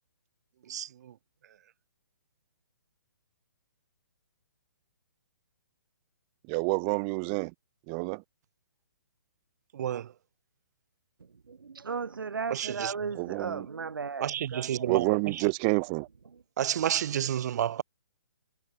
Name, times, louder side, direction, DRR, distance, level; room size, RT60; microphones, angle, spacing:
voice 1, 0.7-1.1 9.7-10.1 12.5-12.9 14.2-15.5 16.6-17.8, right 10 dB, 55° right, 1.0 m, -31 dB
voice 2, 6.5-7.5 7.9-8.2 13.1-13.7 14.9-16.1, right 38 dB, 25° right, 0.7 m, -28 dB
voice 3, 11.5-15.2, right 5 dB, 85° right, 0.9 m, -36 dB
hypercardioid pair, 140°, 11 cm